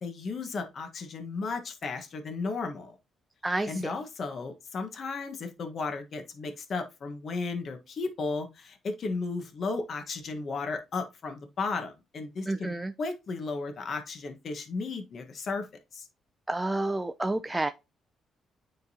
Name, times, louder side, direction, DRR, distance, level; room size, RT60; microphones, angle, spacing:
voice 1, 0.0-2.9 3.7-12.7 13.0-15.6 15.9-16.1, left 4 dB, 55° left, 1.3 m, -34 dB
voice 2, 3.4-3.9 12.5-12.9 16.5-17.7, right 2 dB, 15° right, 0.4 m, -29 dB
9.7 x 3.8 x 2.8 m
cardioid pair, 90°, 0 cm